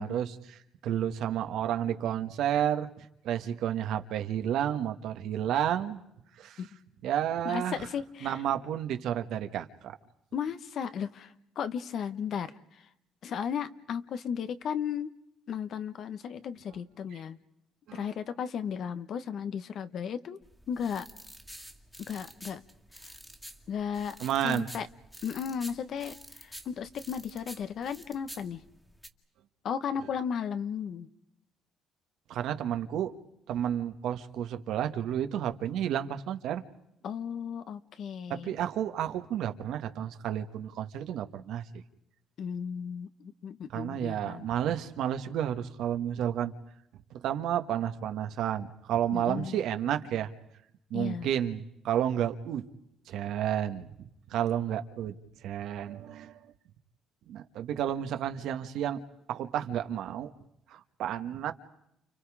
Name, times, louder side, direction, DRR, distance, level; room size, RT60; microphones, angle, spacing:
voice 1, 0.0-2.9 3.2-6.0 6.4-6.6 7.0-7.8 8.2-9.9 17.9-18.1 24.2-24.7 32.3-33.1 33.5-36.6 38.3-41.6 43.7-46.5 47.1-50.3 50.9-52.7 53.1-53.9 54.3-55.1 55.4-56.3 57.3-59.0 59.3-60.3 60.7-61.5, right 10 dB, 75° right, 8 dB, 1.6 m, -31 dB
voice 2, 7.4-8.4 10.3-12.5 13.2-15.1 15.5-17.4 17.9-20.4 20.7-21.0 22.1-22.6 23.7-24.2 24.4-24.9 25.2-26.2 26.4-28.6 29.6-31.1 37.0-38.6 42.4-44.5 49.1-49.6 50.9-51.3, left 7 dB, 60° left, 11 dB, 1.3 m, -35 dB
sound 1, 20.4-29.1, equal, 5° left, 2.0 m, -49 dB
30.0 x 29.5 x 4.9 m, 0.79 s
cardioid pair, 105°, 0 cm